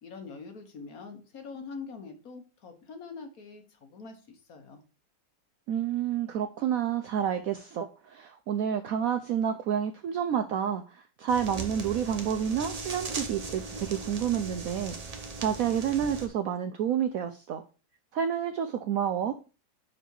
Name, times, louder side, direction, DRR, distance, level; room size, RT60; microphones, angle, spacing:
voice 1, 0.0-4.8, left 4 dB, 55° left, 6 dB, 1.4 m, -44 dB
voice 2, 5.7-17.6 18.1-19.4, right 8 dB, 75° right, 8 dB, 0.8 m, -29 dB
sound 1, 11.3-16.3, right 3 dB, 35° right, 0.6 m, -38 dB
5.4 x 4.9 x 4.5 m, 0.34 s
omnidirectional pair, 2.0 m